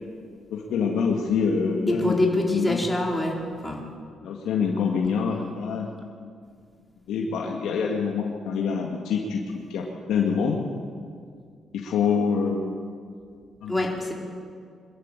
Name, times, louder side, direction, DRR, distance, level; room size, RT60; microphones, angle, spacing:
voice 1, 0.5-2.8 4.2-5.9 6.2-6.3 7.1-9.4 9.7-10.6 11.7-12.8 13.6-13.7, left 6 dB, 80° left, 0 dB, 2.0 m, -26 dB
voice 2, 1.9-3.8 13.7-14.1, left 1 dB, 5° left, -1 dB, 4.2 m, -25 dB
23.5 x 12.5 x 9.1 m, 2.2 s
cardioid pair, 90°, 0 cm